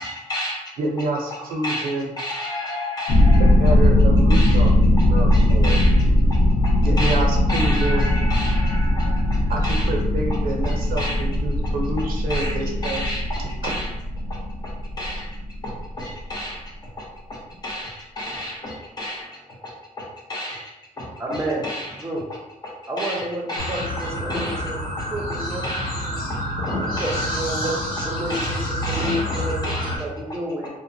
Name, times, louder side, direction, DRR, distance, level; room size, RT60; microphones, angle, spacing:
voice 1, 0.0-0.8 1.6-3.8 4.2-4.7 5.0-9.9 10.6-11.2 12.3-13.9 14.6-14.7 15.0-15.4 15.6-22.0 22.6-22.7 23.0-24.6 25.0-25.1 25.6-26.0 26.3-27.3 28.3-30.0, left 1 dB, 30° left, -4 dB, 0.8 m, -32 dB
voice 2, 0.8-2.1 3.4-4.7 5.1-5.8 6.8-8.1 9.5-13.1, right 2 dB, 90° right, 0 dB, 0.6 m, -27 dB
sound 1, 3.1-16.2, left 1 dB, 45° left, 0.4 m, -19 dB
voice 3, 21.2-21.6 22.0-22.2 22.9-24.8 25.1-25.6 26.0-26.1 26.7-28.6 28.9-29.7 30.0-30.7, right 1 dB, 15° right, -2 dB, 0.6 m, -30 dB
sound 2, 23.6-30.0, left 1 dB, 85° left, 0.9 m, -28 dB
2.8 x 2.1 x 2.6 m, 0.97 s
cardioid pair, 125°, 14 cm